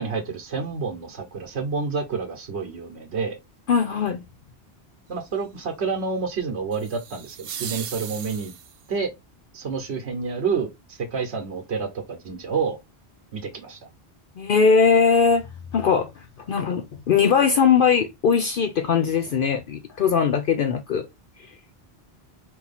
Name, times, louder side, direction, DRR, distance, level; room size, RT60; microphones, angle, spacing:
voice 1, 0.0-3.4 5.1-8.5 8.9-9.1 9.5-12.8 13.3-13.8, right 5 dB, 85° right, 1.2 m, -29 dB
voice 2, 3.7-4.2 14.4-15.4 15.7-16.1 16.5-21.1, left 6 dB, 60° left, 0.7 m, -20 dB
sound 1, 6.7-8.9, right 8 dB, 65° right, 0.8 m, -37 dB
4.3 x 2.8 x 4.1 m
omnidirectional pair, 1.1 m